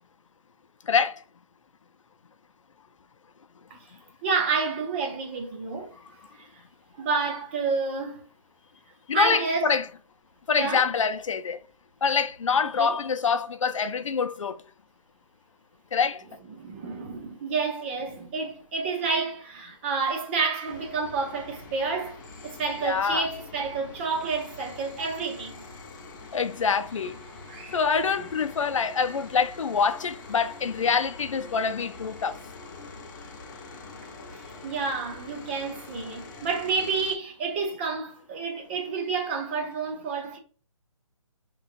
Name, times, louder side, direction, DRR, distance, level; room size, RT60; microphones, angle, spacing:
voice 1, 0.9-1.2 9.1-9.9 10.5-11.6 12.0-14.6 15.9-16.2 22.8-23.3 26.3-27.2 27.7-32.4, left 6 dB, 75° left, 0.5 m, -25 dB
voice 2, 4.2-5.9 6.4-6.5 7.0-8.3 9.1-9.7 10.5-10.9 12.8-13.0 16.6-25.6 27.5-27.8 34.2-40.4, right 4 dB, 20° right, 0.6 m, -29 dB
sound 1, 20.7-37.2, left 3 dB, 35° left, 1.0 m, -44 dB
5.4 x 3.0 x 2.5 m
hypercardioid pair, 155°, 17 cm